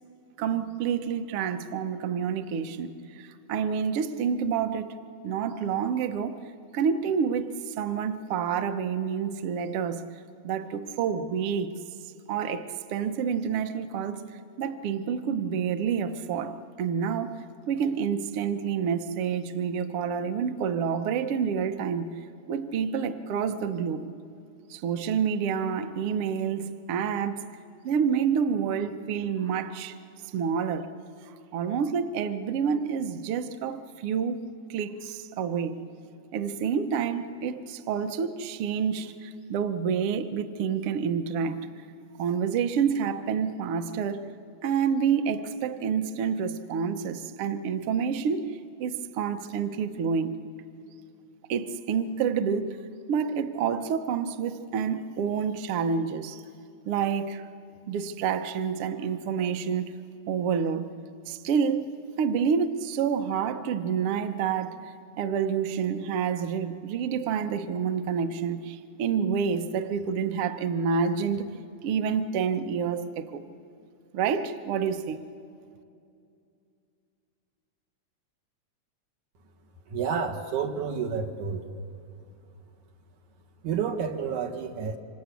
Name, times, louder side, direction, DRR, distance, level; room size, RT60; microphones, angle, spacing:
voice 1, 0.4-4.9 5.2-6.4 6.7-10.1 10.4-11.8 12.3-14.3 14.6-22.1 22.5-24.1 24.7-27.4 27.8-30.0 30.3-30.9 31.5-34.4 34.7-35.8 36.3-41.7 42.2-44.3 44.6-50.4 51.5-52.8 53.1-56.4 56.9-57.5 57.9-59.9 60.3-60.9 61.3-61.9 62.2-64.8 65.2-71.5 71.8-73.4 74.1-75.2, right 7 dB, 65° right, 1.5 m, -28 dB
voice 2, 79.9-81.7 83.6-85.0, right 6 dB, 85° right, 3.1 m, -30 dB
26.5 x 26.0 x 8.3 m
omnidirectional pair, 3.4 m